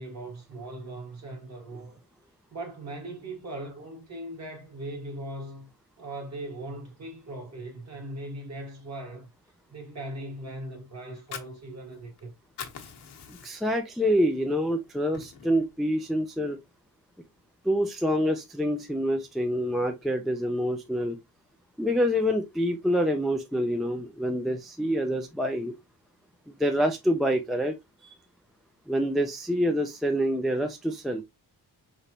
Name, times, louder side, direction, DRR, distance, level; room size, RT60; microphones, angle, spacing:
voice 1, 0.0-1.9 2.5-5.7 6.0-9.3 9.7-12.3, right 1 dB, 40° right, 1.6 m, -39 dB
Fire, 11.0-12.2 12.4-13.8 14.2-14.4 14.8-15.7, left 7 dB, 80° left, 1.0 m, -42 dB
voice 2, 13.3-16.6 17.6-21.2 21.8-25.7 26.5-27.7 28.9-31.2, equal, ahead, 0.3 m, -26 dB
5.0 x 3.4 x 2.7 m
wide cardioid pair, 180°, 40 cm